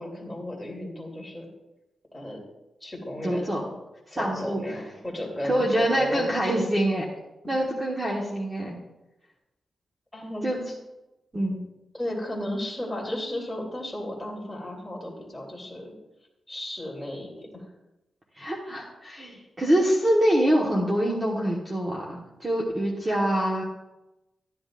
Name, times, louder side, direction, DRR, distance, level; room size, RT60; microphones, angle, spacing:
voice 1, 0.0-1.5 2.1-2.4 2.8-3.5 4.1-6.4 10.1-10.4 11.9-15.9 16.5-17.7, left 1 dB, 5° left, -3 dB, 2.8 m, -34 dB
voice 2, 3.2-3.6 4.1-4.6 5.4-7.0 7.5-8.8 10.4-10.6 11.3-11.6 18.3-23.6, right 1 dB, 20° right, -3 dB, 1.4 m, -25 dB
13.5 x 10.5 x 2.5 m, 0.97 s
wide cardioid pair, 155°, 0 cm